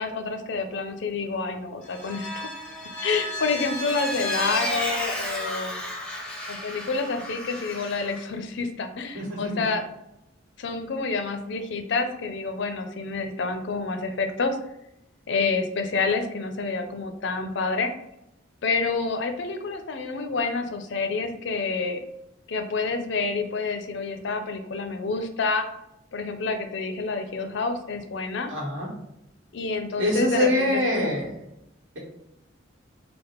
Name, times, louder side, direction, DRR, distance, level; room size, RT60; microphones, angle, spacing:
voice 1, 0.0-2.5 3.0-5.8 6.5-9.8 10.6-14.6 15.3-17.9 18.6-22.0 22.5-25.7 26.1-28.5 29.5-31.1, left 4 dB, 60° left, 7 dB, 0.4 m, -28 dB
Vehicle, 1.8-8.2, left 1 dB, 5° left, 0.6 m, -32 dB
voice 2, 9.1-9.6 28.5-28.9 30.0-31.3, left 1 dB, 70° right, -4 dB, 1.3 m, -24 dB
3.5 x 2.0 x 4.3 m, 0.84 s
head